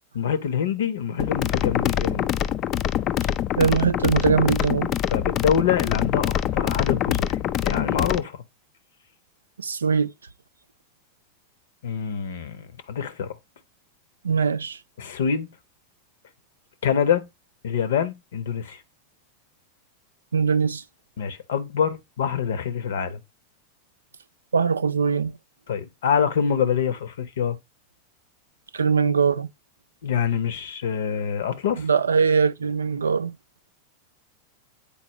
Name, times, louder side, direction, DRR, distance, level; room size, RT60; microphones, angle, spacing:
voice 1, 0.1-2.3 5.1-8.4 11.8-13.3 15.0-15.5 16.8-17.2 17.6-18.8 21.2-23.2 25.7-27.6 30.0-31.9, left 7 dB, 60° left, 0.8 m, -25 dB
sound 1, 1.2-8.2, left 11 dB, 35° left, 0.4 m, -25 dB
voice 2, 3.6-4.9 9.6-10.1 14.2-14.8 20.3-20.8 24.5-25.4 28.7-29.5 31.8-33.3, right 6 dB, 75° right, 0.4 m, -21 dB
8.7 x 4.2 x 3.0 m
figure-of-eight pair, 90°, 0 cm